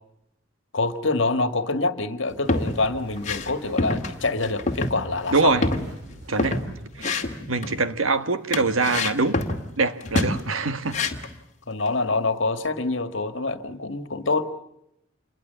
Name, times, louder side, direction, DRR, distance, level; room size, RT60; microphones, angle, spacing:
voice 1, 0.7-5.6 7.6-7.7 11.7-14.4, left 3 dB, 65° left, 10 dB, 1.9 m, -26 dB
sound 1, 2.3-2.8 3.2-3.5 3.8-4.2 4.4-5.0 5.2-5.3 5.6-6.7 7.0-7.8 8.5-9.7 10.0-10.4 10.9-11.4, left 2 dB, 35° left, 2.2 m, -26 dB
sound 2, 2.4-6.8, equal, 55° right, 4.3 m, -45 dB
voice 2, 5.3-5.6 6.3-6.6 7.0-7.2 7.5-9.4 9.8-11.0, right 3 dB, 90° right, 11 dB, 1.6 m, -23 dB
27.5 x 22.0 x 6.9 m, 0.80 s
head